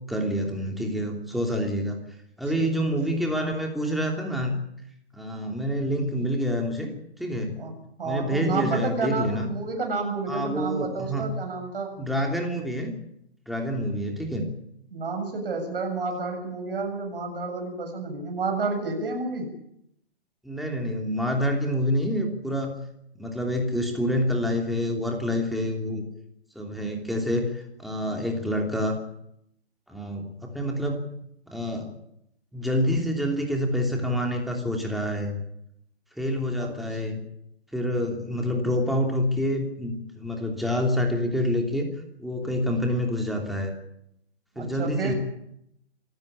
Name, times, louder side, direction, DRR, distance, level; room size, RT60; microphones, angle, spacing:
voice 1, 0.1-2.0 2.4-4.5 5.1-6.9 7.2-7.5 8.0-9.5 10.3-11.3 12.0-12.9 13.5-14.5 20.4-22.8 23.1-26.0 26.5-29.0 29.9-31.0 31.5-31.9 32.5-35.4 36.2-37.2 37.7-41.9 42.2-43.7 44.5-45.1, equal, ahead, 1 dB, 3.1 m, -27 dB
voice 2, 8.0-11.9 14.9-19.5 36.6-36.7 44.6-45.2, right 3 dB, 55° right, 3 dB, 7.4 m, -30 dB
26.5 x 14.5 x 8.8 m, 0.77 s
figure-of-eight pair, 135°, 33 cm